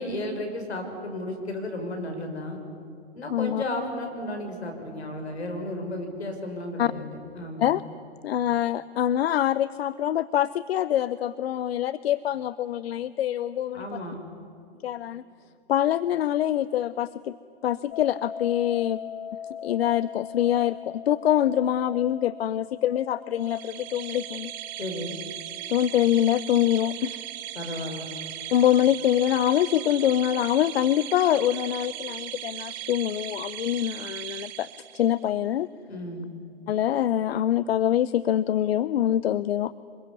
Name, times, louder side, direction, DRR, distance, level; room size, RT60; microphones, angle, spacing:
voice 1, 0.0-2.6 3.1-7.7 13.7-14.2 24.8-25.2 27.6-28.1 35.9-36.3, left 1 dB, 90° left, 4 dB, 5.7 m, -33 dB
voice 2, 3.3-3.6 6.8-6.9 7.6-7.8 8.2-14.0 14.8-15.2 15.7-17.3 17.6-19.0 19.6-24.5 25.7-27.2 27.7-27.8 28.5-35.7 36.7-39.7, left 11 dB, 70° left, 17 dB, 0.7 m, -25 dB
sound 1, 17.9-28.8, left 9 dB, 55° left, 3.9 m, -43 dB
sound 2, 23.4-35.2, right 13 dB, 45° right, 1.4 m, -38 dB
25.0 x 22.0 x 9.6 m, 2.6 s
hypercardioid pair, 115°, 32 cm